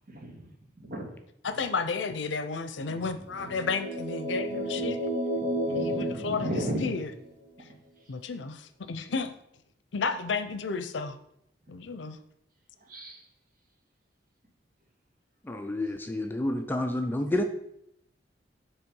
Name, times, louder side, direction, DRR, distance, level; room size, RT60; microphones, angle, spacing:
voice 1, 0.1-0.4 0.8-1.1 2.9-3.1 4.7-5.0 5.4-6.9 12.9-13.2, right 1 dB, 50° right, 1 dB, 1.5 m, -35 dB
voice 2, 1.4-5.0 5.7-7.1 8.1-9.3 9.9-11.2 11.7-12.2, left 4 dB, 85° left, 11 dB, 0.6 m, -32 dB
sound 1, 3.3-7.2, equal, 65° right, 1.7 m, -32 dB
voice 3, 15.4-17.4, left 1 dB, 10° left, 6 dB, 0.4 m, -29 dB
7.3 x 3.4 x 5.3 m, 0.78 s
head